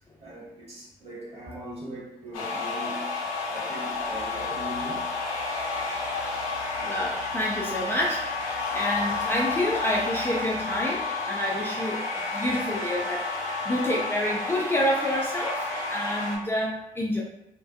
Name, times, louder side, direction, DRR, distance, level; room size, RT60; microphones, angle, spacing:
voice 1, 0.2-3.1 3.5-5.1, right 1 dB, 35° right, -5 dB, 1.3 m, -39 dB
sound 1, 2.3-16.4, left 3 dB, 75° left, 0.4 m, -31 dB
sound 2, 3.9-10.9, right 8 dB, 55° right, 0.7 m, -49 dB
voice 2, 6.8-17.2, equal, 15° left, -4 dB, 0.4 m, -28 dB
2.3 x 2.1 x 2.5 m, 0.86 s
figure-of-eight pair, 40°, 17 cm